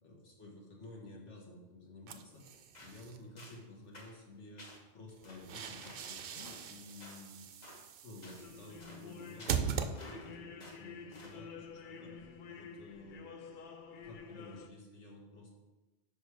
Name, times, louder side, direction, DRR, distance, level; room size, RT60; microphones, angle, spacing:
voice 1, 0.0-2.5 2.8-4.7 4.9-7.5 8.0-12.1 12.5-13.3 14.0-15.6, left 2 dB, 75° left, -1 dB, 1.7 m, -52 dB
sound 1, 2.1-3.2 5.1-10.5, right 7 dB, 60° right, 0.6 m, -41 dB
sound 2, 2.7-3.0 3.4-3.6 3.9-4.1 4.6-4.8 5.2-5.4 5.8-6.0 6.4-6.6 7.0-7.2 7.6-7.8 8.2-8.4 8.8-9.0 9.4-10.3 10.6-10.8 11.1-11.4, left 1 dB, 35° left, 1.2 m, -53 dB
sound 3, 8.4-14.7, left 5 dB, 55° left, 0.6 m, -50 dB
6.2 x 5.2 x 4.8 m, 1.1 s
omnidirectional pair, 1.2 m